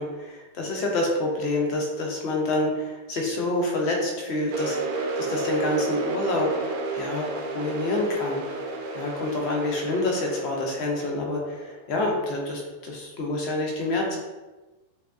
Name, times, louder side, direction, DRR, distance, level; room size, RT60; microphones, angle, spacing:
voice 1, 0.0-4.8 5.2-6.5 6.9-7.3 7.5-8.4 8.9-14.2, left 2 dB, 45° left, 0 dB, 0.6 m, -27 dB
sound 1, 4.5-12.1, right 2 dB, 50° right, 0.4 m, -32 dB
2.7 x 2.1 x 2.4 m, 1.2 s
figure-of-eight pair, 90°, 0 cm